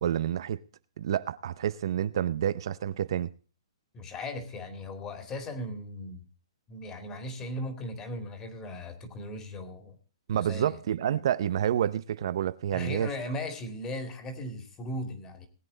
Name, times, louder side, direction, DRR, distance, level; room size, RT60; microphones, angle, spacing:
voice 1, 0.0-0.6 1.0-3.3 10.3-13.1, right 10 dB, 55° right, 0.6 m, -28 dB
voice 2, 3.9-6.2 6.7-10.0 10.4-10.8 12.7-15.5, left 1 dB, 15° left, 2.4 m, -37 dB
19.5 x 8.7 x 3.9 m
hypercardioid pair, 160°, 3 cm